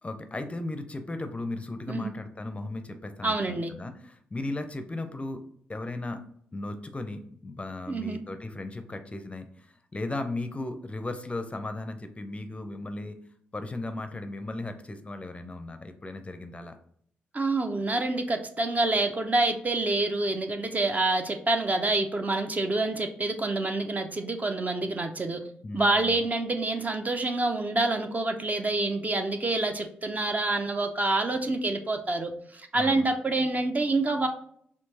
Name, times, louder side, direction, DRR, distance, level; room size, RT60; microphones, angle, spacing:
voice 1, 0.0-5.4 5.7-6.2 6.5-13.2 13.5-16.7 25.6-26.2 32.7-33.1, left 2 dB, 25° left, 8 dB, 0.5 m, -36 dB
voice 2, 3.2-3.7 7.9-8.2 17.3-25.4 25.7-34.3, right 2 dB, 30° right, 6 dB, 0.5 m, -27 dB
4.4 x 2.8 x 2.8 m, 0.64 s
hypercardioid pair, 40°, 5 cm